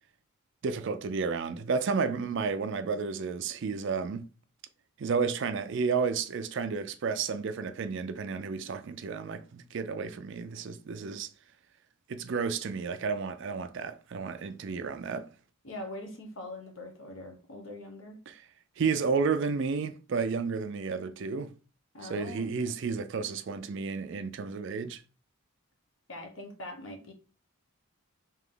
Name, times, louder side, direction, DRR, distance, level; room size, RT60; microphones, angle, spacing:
voice 1, 0.6-4.3 5.0-11.3 12.1-15.3 18.3-18.4 18.8-21.5 22.1-25.0, right 5 dB, 55° right, 0.4 m, -32 dB
voice 2, 15.6-18.2 21.9-22.8 26.1-27.1, left 1 dB, 65° left, 1.1 m, -43 dB
3.4 x 2.8 x 3.7 m
head